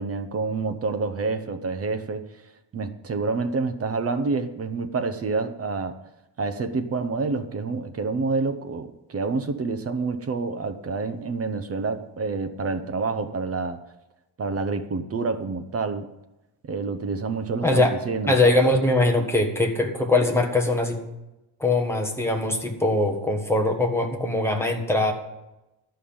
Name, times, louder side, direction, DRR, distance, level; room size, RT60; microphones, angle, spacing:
voice 1, 0.0-2.4 2.7-6.0 6.4-13.8 14.4-16.1 16.6-18.4, right 4 dB, 35° right, 9 dB, 0.7 m, -28 dB
voice 2, 17.6-18.0 18.3-21.0 21.6-25.1, left 2 dB, 5° left, 2 dB, 1.3 m, -22 dB
12.5 x 5.7 x 8.6 m, 0.96 s
cardioid pair, 155°, 42 cm